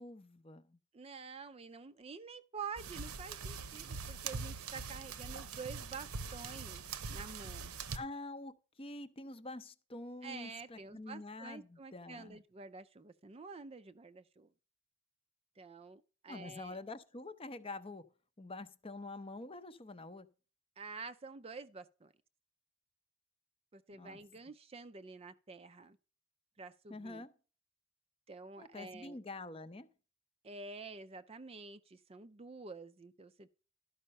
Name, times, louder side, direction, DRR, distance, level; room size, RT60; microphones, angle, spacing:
voice 1, 0.0-0.8 7.9-12.4 16.3-18.1 18.4-20.3 23.9-24.2 26.9-27.3 28.6-29.9, left 2 dB, 25° left, 0.6 m, -46 dB
voice 2, 0.9-6.8 7.1-7.7 10.2-14.5 15.6-16.8 20.8-22.1 23.7-26.0 26.6-27.3 28.3-29.2 30.4-33.5, right 4 dB, 25° right, 0.4 m, -48 dB
sound 1, 2.8-8.0, right 5 dB, 85° right, 0.9 m, -43 dB
12.0 x 5.5 x 5.3 m
head